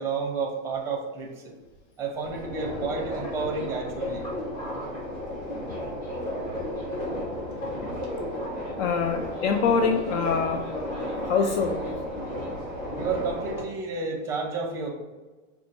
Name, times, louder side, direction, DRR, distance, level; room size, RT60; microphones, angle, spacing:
voice 1, 0.0-1.5 2.0-4.2 12.9-14.9, right 4 dB, 5° right, 0 dB, 0.6 m, -31 dB
Subway metro underground, 2.2-13.6, left 1 dB, 20° left, 1.0 m, -33 dB
voice 2, 8.8-10.7 11.3-11.9, left 5 dB, 65° left, 4 dB, 0.5 m, -24 dB
5.0 x 2.3 x 4.2 m, 1.3 s
supercardioid pair, 160°, 38 cm